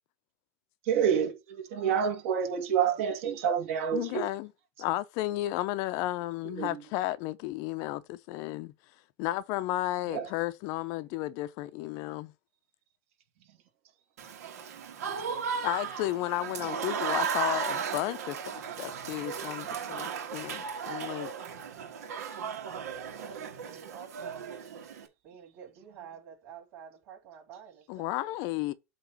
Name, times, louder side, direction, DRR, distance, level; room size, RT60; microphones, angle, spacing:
voice 1, 0.9-4.3 6.5-6.8 10.1-10.3, right 8 dB, 55° right, 2.3 m, -28 dB
voice 2, 3.9-4.5 4.8-8.7 9.2-12.3 15.6-21.3 27.9-28.7, left 16 dB, 40° left, 0.6 m, -33 dB
Applause / Crowd, 14.2-25.1, right 7 dB, 85° right, 1.8 m, -35 dB
voice 3, 23.1-24.6 25.2-28.3, right 8 dB, 35° right, 4.5 m, -49 dB
8.1 x 3.0 x 6.1 m
supercardioid pair, 155°, 8 cm